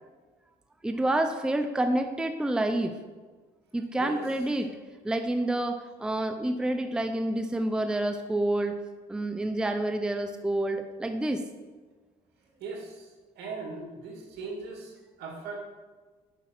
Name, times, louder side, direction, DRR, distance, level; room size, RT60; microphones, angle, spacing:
voice 1, 0.8-2.9 3.7-4.7 5.0-8.8 9.1-11.4, right 1 dB, 5° right, 7 dB, 0.5 m, -28 dB
voice 2, 12.4-13.1 13.4-15.6, right 3 dB, 75° right, 0 dB, 2.2 m, -39 dB
7.0 x 5.3 x 6.0 m, 1.3 s
cardioid pair, 110°, 17 cm